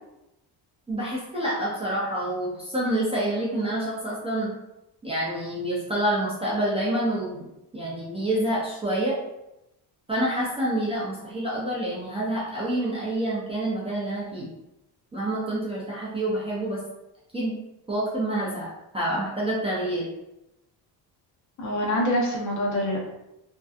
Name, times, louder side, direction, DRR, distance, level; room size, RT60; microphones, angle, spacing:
voice 1, 0.9-4.5 5.0-7.5 7.7-9.1 10.1-14.5 15.1-16.8 17.3-17.6 17.9-20.1, right 1 dB, 15° right, -7 dB, 0.5 m, -27 dB
voice 2, 21.6-23.0, left 1 dB, 40° left, -2 dB, 0.6 m, -25 dB
2.6 x 2.2 x 2.3 m, 0.89 s
cardioid pair, 145°, 45 cm